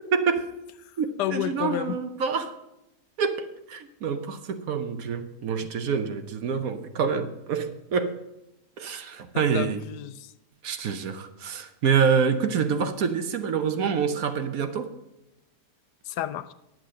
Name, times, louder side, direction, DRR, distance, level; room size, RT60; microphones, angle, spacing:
voice 1, 0.1-0.5 1.0-2.5 3.2-8.2 8.8-9.8 10.6-14.9, right 6 dB, 60° right, 1.1 m, -26 dB
voice 2, 0.9-2.0 9.3-10.3 16.0-16.5, left 12 dB, 80° left, 1.2 m, -31 dB
10.5 x 7.6 x 6.4 m
omnidirectional pair, 1.8 m